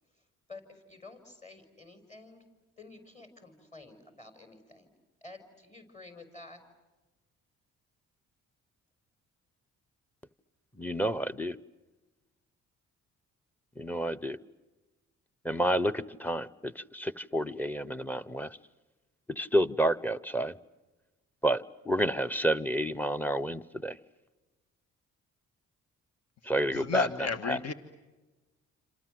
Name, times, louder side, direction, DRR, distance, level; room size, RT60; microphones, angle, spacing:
voice 1, 0.5-2.4 2.8-4.9 5.2-6.6, left 3 dB, 25° left, 7 dB, 5.6 m, -50 dB
voice 2, 10.8-11.6 13.8-14.4 15.4-18.6 19.3-20.5 21.4-23.9 26.5-27.1, right 1 dB, 5° left, 17 dB, 0.9 m, -29 dB
voice 3, 26.7-27.7, left 5 dB, 55° left, 10 dB, 1.8 m, -32 dB
28.0 x 27.0 x 7.8 m, 1.2 s
cardioid pair, 90°, 30 cm